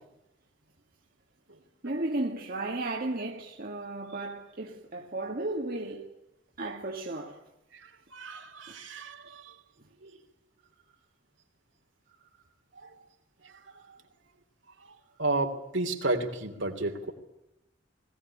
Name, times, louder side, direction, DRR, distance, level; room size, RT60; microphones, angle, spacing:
voice 1, 1.8-6.1 6.6-7.4 8.7-8.8 12.2-12.3, right 2 dB, 50° right, 1.9 m, -34 dB
voice 2, 8.1-9.5 12.8-12.9 15.2-17.1, right 2 dB, 70° right, 3.2 m, -31 dB
21.0 x 18.0 x 9.9 m
head